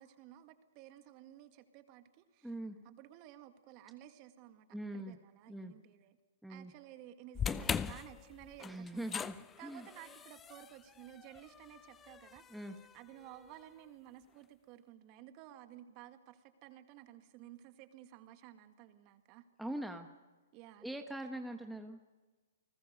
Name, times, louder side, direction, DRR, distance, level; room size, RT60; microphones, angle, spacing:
voice 1, 0.0-2.5 2.8-6.2 6.5-12.5 12.9-19.5 20.5-20.9, right 13 dB, 35° right, 7 dB, 2.0 m, -55 dB
voice 2, 2.4-2.8 4.7-5.2 5.5-5.7 6.4-6.7 8.6-9.4 9.6-9.9 12.5-12.8 19.6-20.1 20.8-22.0, right 1 dB, ahead, 4 dB, 1.2 m, -42 dB
sound 1, 7.3-13.6, left 7 dB, 15° left, 0.6 m, -41 dB
29.5 x 19.5 x 5.3 m, 1.3 s
hypercardioid pair, 135°, 0 cm